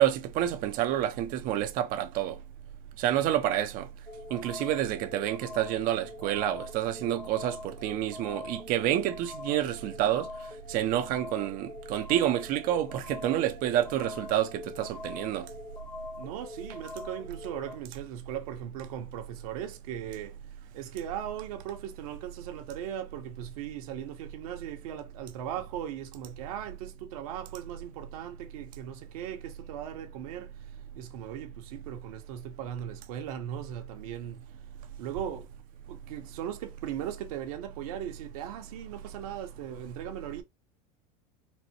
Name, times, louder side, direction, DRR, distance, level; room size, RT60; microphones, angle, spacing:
voice 1, 0.0-2.4 3.0-3.9 4.3-15.5, right 12 dB, 50° right, 0.6 m, -28 dB
sound 1, 4.1-17.8, left 3 dB, 15° left, 0.3 m, -43 dB
voice 2, 16.2-20.4 20.7-34.4 35.0-35.5 35.9-40.4, right 10 dB, 75° right, 1.1 m, -38 dB
4.1 x 2.2 x 2.9 m
supercardioid pair, 125°, 19 cm